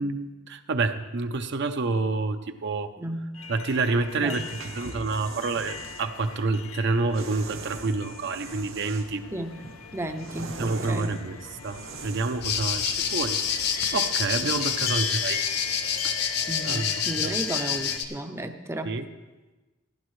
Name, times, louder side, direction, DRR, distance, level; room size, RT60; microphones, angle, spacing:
voice 1, 0.0-2.9 3.5-4.4 4.7-9.2 10.6-11.4 11.6-13.4 13.9-15.5 16.6-17.4 18.8-19.0, right 3 dB, 60° right, 8 dB, 0.6 m, -28 dB
voice 2, 3.0-3.4 4.2-4.5 9.3-9.5 9.9-11.2 14.4-14.5 16.5-18.9, right 1 dB, 15° right, 6 dB, 0.5 m, -34 dB
sound 1, 3.3-18.0, left 6 dB, 90° left, 0.7 m, -39 dB
sound 2, 4.2-6.1 7.1-9.2 9.6-12.5, right 3 dB, 75° right, 1.0 m, -41 dB
sound 3, 12.4-18.0, left 7 dB, 55° left, 0.9 m, -27 dB
15.5 x 11.0 x 3.2 m, 1.2 s
head